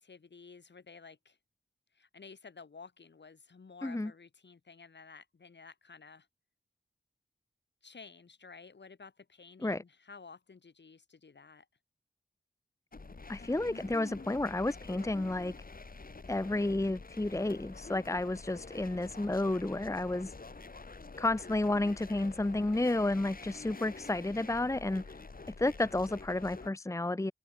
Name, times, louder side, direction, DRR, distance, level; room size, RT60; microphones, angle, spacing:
voice 1, 0.0-1.4 1.9-6.3 7.8-11.7, left 5 dB, 70° left, 5.2 m, -53 dB
sound 1, 12.9-26.7, left 3 dB, 50° left, 7.8 m, -48 dB
voice 2, 13.3-15.5 16.3-20.3 21.2-25.0 25.6-27.3, left 2 dB, 15° left, 1.0 m, -31 dB
open air
wide cardioid pair, 85°, 19 cm